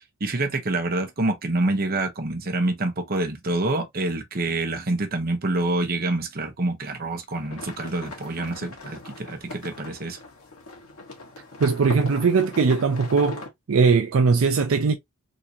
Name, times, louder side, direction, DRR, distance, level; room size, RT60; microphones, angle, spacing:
voice 1, 0.2-10.2, right 2 dB, 45° right, 0.9 m, -27 dB
sound 1, 7.3-13.5, left 2 dB, 80° left, 1.5 m, -40 dB
voice 2, 11.6-15.0, right 5 dB, 70° right, 0.5 m, -20 dB
3.7 x 2.8 x 2.7 m
head